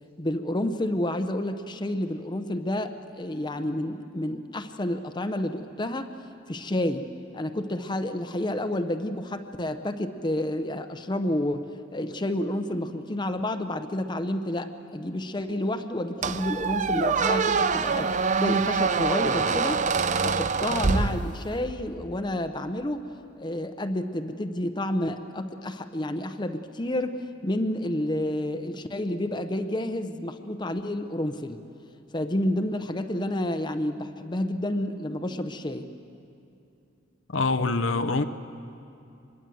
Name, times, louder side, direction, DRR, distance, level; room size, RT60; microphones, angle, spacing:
voice 1, 0.2-7.1 7.3-19.8 20.2-23.0 23.4-31.6 32.1-35.9, left 1 dB, 25° left, 8 dB, 0.8 m, -30 dB
Squeak, 16.2-21.7, right 5 dB, 40° right, 0.6 m, -25 dB
voice 2, 37.3-38.2, left 3 dB, 75° left, 9 dB, 0.8 m, -24 dB
25.0 x 21.5 x 7.8 m, 2.7 s
head